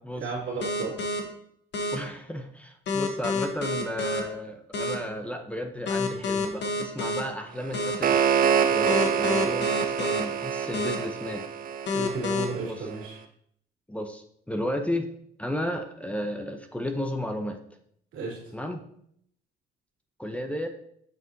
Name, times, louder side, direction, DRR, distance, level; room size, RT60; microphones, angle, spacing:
voice 1, 0.1-1.0 11.9-13.2 18.1-18.4, right 3 dB, 80° right, -4 dB, 2.7 m, -33 dB
sound 1, 0.6-1.2 1.7-2.0 2.9-4.2 4.7-4.9 5.9-7.2 7.7-8.0 8.9-10.2 10.7-11.0 11.9-12.4, left 3 dB, 65° left, 1.2 m, -28 dB
voice 2, 1.9-8.3 8.7-11.5 12.6-12.9 13.9-15.1 15.4-17.6 18.5-18.8 20.2-20.7, left 1 dB, 5° left, 5 dB, 0.8 m, -33 dB
sound 2, 7.6-12.7, right 7 dB, 45° right, 0.5 m, -26 dB
7.3 x 6.0 x 2.8 m, 0.68 s
cardioid pair, 90°, 20 cm